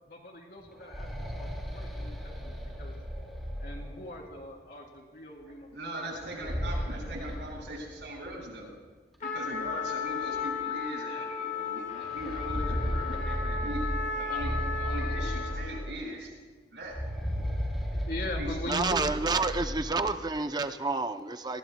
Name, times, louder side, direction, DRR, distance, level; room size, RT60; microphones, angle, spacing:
voice 1, 0.1-1.1 1.3-2.9 3.6-6.1 6.4-6.7 18.1-19.0, left 1 dB, 60° left, 0 dB, 3.3 m, -41 dB
sound 1, 0.6-4.4 6.1-8.3 8.7-8.8 9.6-9.7 10.2-10.4 12.0-16.1 16.8-20.2, equal, ahead, 3.4 m, -35 dB
voice 2, 5.4-8.7 9.2-13.8 14.1-16.3 16.7-17.0 18.4-18.6, right 1 dB, 85° right, -2 dB, 6.5 m, -40 dB
Trumpet, 9.2-15.8, left 5 dB, 40° left, 1.4 m, -35 dB
voice 3, 18.7-21.6, right 3 dB, 25° right, 8 dB, 0.6 m, -29 dB
28.5 x 19.5 x 2.3 m, 1.4 s
head